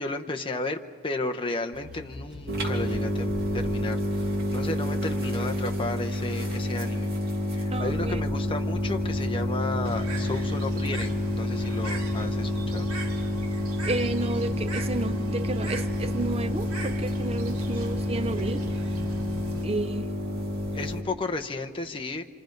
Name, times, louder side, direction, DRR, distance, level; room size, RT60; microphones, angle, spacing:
voice 1, 0.0-7.1 7.5-12.9 20.7-22.2, left 2 dB, 25° left, 0.8 m, -33 dB
sound 1, 1.7-4.7 7.7-11.2, equal, 5° right, 5.9 m, -41 dB
sound 2, 2.5-21.0, left 1 dB, 50° right, 2.6 m, -29 dB
voice 2, 7.7-8.2 13.8-18.6 19.6-20.1, right 2 dB, 30° right, 0.6 m, -31 dB
Bird, 9.8-19.6, right 1 dB, 85° right, 2.2 m, -39 dB
27.5 x 26.5 x 5.3 m
head